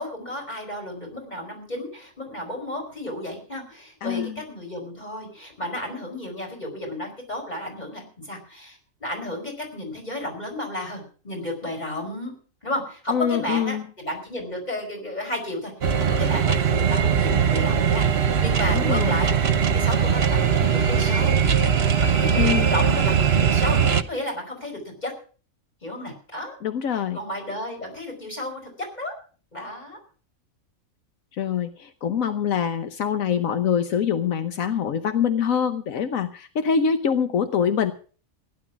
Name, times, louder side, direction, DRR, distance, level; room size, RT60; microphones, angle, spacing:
voice 1, 0.0-12.3 12.6-19.3 19.7-21.4 22.0-25.1 25.8-26.6 26.9-28.6 29.0-29.1 29.5-30.0, left 1 dB, 30° left, 3 dB, 5.6 m, -33 dB
voice 2, 4.0-4.4 13.1-13.8 18.7-19.2 22.3-22.7 26.6-27.2 31.3-37.9, left 7 dB, 80° left, 9 dB, 1.4 m, -24 dB
sound 1, 15.8-24.0, right 7 dB, 50° right, 1.2 m, -20 dB
16.0 x 11.0 x 6.0 m, 0.40 s
omnidirectional pair, 1.4 m